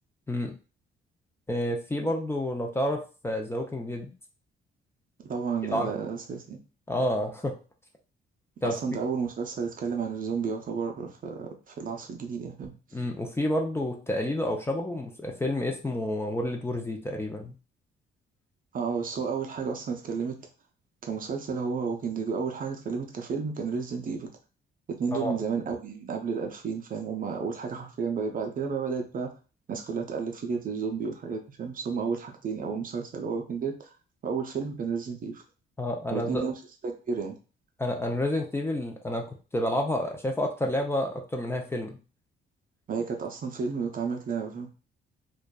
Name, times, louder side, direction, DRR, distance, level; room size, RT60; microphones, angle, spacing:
voice 1, 1.5-4.1 5.7-5.9 6.9-7.6 8.6-8.8 12.9-17.5 25.1-25.4 35.8-36.4 37.8-42.0, left 1 dB, 10° left, 1 dB, 0.4 m, -29 dB
voice 2, 5.2-6.6 8.6-12.8 18.7-20.5 21.0-24.3 24.9-29.3 29.7-33.9 34.2-35.4 36.1-36.5 36.8-37.3 42.9-44.7, right 5 dB, 45° right, 3 dB, 0.5 m, -32 dB
2.5 x 2.2 x 2.2 m, 0.34 s
cardioid pair, 90°, 20 cm